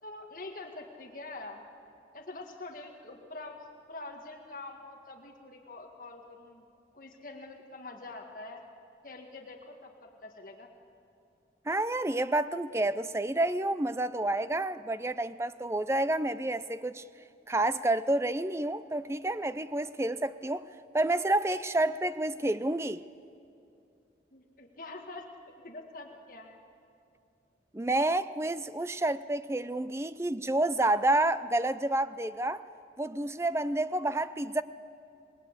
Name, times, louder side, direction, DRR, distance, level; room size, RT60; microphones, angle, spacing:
voice 1, 0.0-1.7 2.1-3.6 3.9-6.7 6.9-8.6 9.0-10.7 24.3-25.3 25.6-26.6, left 2 dB, 50° left, 1.8 m, -45 dB
voice 2, 11.7-17.0 17.5-20.6 20.9-23.0 27.7-32.6 33.0-34.6, right 2 dB, 15° right, 0.5 m, -29 dB
27.0 x 20.0 x 8.1 m
head